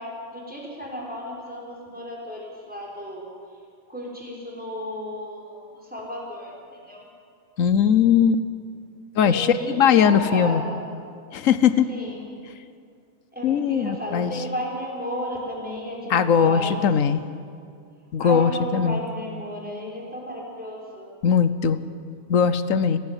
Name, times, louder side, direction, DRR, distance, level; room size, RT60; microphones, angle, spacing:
voice 1, 0.0-3.3 3.9-7.0 9.2-10.8 11.9-12.2 13.3-16.9 18.2-21.1, equal, 5° right, -3 dB, 5.5 m, -33 dB
voice 2, 7.6-8.4 9.2-10.6 11.3-11.9 13.4-14.3 16.1-17.2 18.1-19.0 21.2-21.8 22.3-23.0, left 7 dB, 75° left, 13 dB, 1.2 m, -19 dB
29.5 x 10.5 x 9.8 m, 2.3 s
omnidirectional pair, 1.4 m